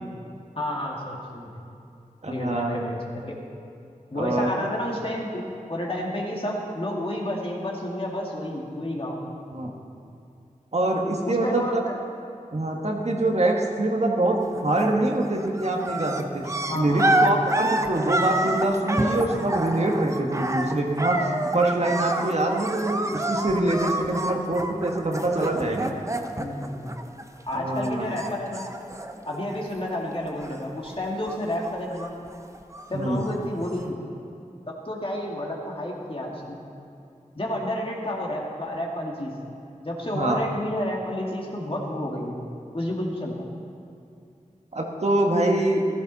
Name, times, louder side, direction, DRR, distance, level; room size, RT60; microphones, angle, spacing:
voice 1, 0.6-1.5 2.3-3.4 4.1-9.2 11.2-11.9 16.7-17.3 19.0-19.3 26.4-27.0 27.5-28.7 29.2-32.1 32.9-34.0 34.7-36.6 37.3-39.4 39.8-42.4 42.7-43.5, left 1 dB, 40° left, -2 dB, 2.2 m, -30 dB
voice 2, 2.2-2.7 4.1-4.5 9.5-9.7 10.7-11.8 12.5-25.9 27.5-28.1 32.9-33.2 40.1-40.4 44.7-45.8, right 1 dB, 50° right, 1 dB, 1.5 m, -24 dB
sound 1, 14.5-15.0 15.2-27.6 27.8-30.0 30.2-30.9 31.2-33.0 33.7-33.8, right 1 dB, 20° right, 0.8 m, -28 dB
15.5 x 13.5 x 4.1 m, 2.5 s
wide cardioid pair, 65°, 14 cm